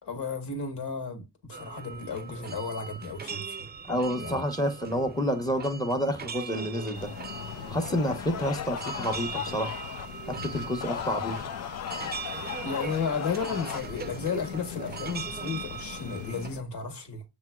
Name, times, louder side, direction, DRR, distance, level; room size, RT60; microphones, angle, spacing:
voice 1, 0.0-3.7 4.2-4.4 12.6-17.2, left 5 dB, 70° left, 1.9 m, -33 dB
sound 1, 1.5-16.5, right 6 dB, 25° right, 0.5 m, -40 dB
voice 2, 3.9-7.1 7.7-9.7 10.3-11.5, equal, 10° left, 1.0 m, -29 dB
sound 2, 6.5-10.1 10.6-13.8, left 9 dB, 40° left, 0.5 m, -38 dB
sound 3, 6.9-16.6, left 10 dB, 85° left, 0.6 m, -42 dB
7.3 x 3.1 x 2.2 m
cardioid pair, 110°, 41 cm